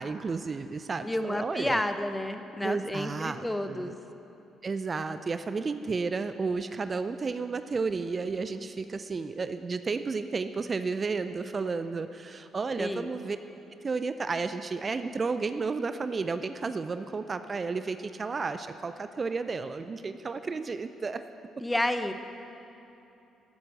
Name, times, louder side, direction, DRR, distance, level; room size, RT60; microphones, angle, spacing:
voice 1, 0.0-1.8 2.6-3.9 4.6-13.4 13.8-21.2, right 4 dB, 35° right, 10 dB, 0.4 m, -32 dB
voice 2, 1.0-3.9 12.8-13.1 21.6-22.1, left 1 dB, 10° left, 9 dB, 0.9 m, -30 dB
11.0 x 8.5 x 7.8 m, 2.8 s
hypercardioid pair, 45°, 0 cm